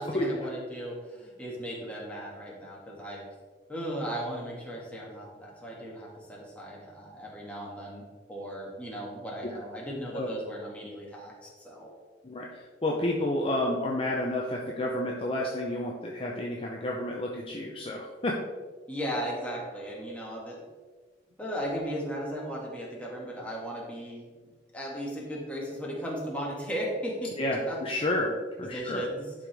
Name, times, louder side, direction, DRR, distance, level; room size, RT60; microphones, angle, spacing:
voice 1, 0.0-3.2 3.7-11.9 18.9-20.6 21.4-27.8 28.6-29.3, equal, 5° left, -4 dB, 2.0 m, -36 dB
voice 2, 12.2-18.4 27.4-29.0, left 1 dB, 30° left, -1 dB, 0.7 m, -30 dB
11.0 x 5.0 x 3.5 m, 1.4 s
head